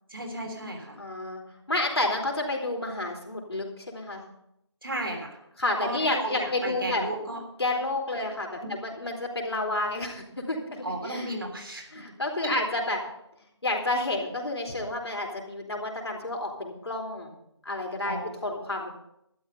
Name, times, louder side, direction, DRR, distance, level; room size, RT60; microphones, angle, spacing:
voice 1, 0.1-1.0 4.8-5.4 5.8-7.4 8.6-8.8 10.8-11.9 12.4-12.5 18.0-18.3, right 1 dB, 50° right, 3 dB, 3.4 m, -34 dB
voice 2, 1.0-1.4 1.7-4.2 5.6-7.0 7.6-11.3 11.9-13.0 13.6-17.3 17.6-18.2 18.4-18.9, left 2 dB, 60° left, 1 dB, 4.1 m, -30 dB
12.5 x 11.0 x 5.3 m, 0.78 s
figure-of-eight pair, 180°, 15 cm